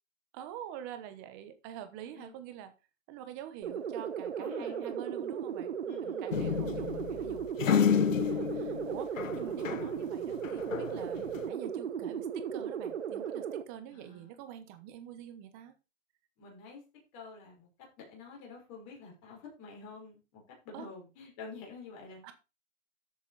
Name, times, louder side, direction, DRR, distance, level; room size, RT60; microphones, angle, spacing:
voice 1, 0.3-2.7 3.1-5.7 6.0-15.8 20.7-20.9 22.2-22.3, right 10 dB, 15° right, 10 dB, 1.0 m, -46 dB
voice 2, 2.0-2.4 4.4-5.0 5.8-6.3 13.9-14.3 16.4-16.8 17.1-17.7 18.0-22.3, left 4 dB, 25° left, 0 dB, 5.5 m, -48 dB
sound 1, 3.6-13.6, right 8 dB, 60° right, 1.5 m, -36 dB
sound 2, 6.3-10.0 10.3-11.5, left 8 dB, 85° left, 1.3 m, -30 dB
13.0 x 8.2 x 4.1 m, 0.29 s
hypercardioid pair, 170°, 38 cm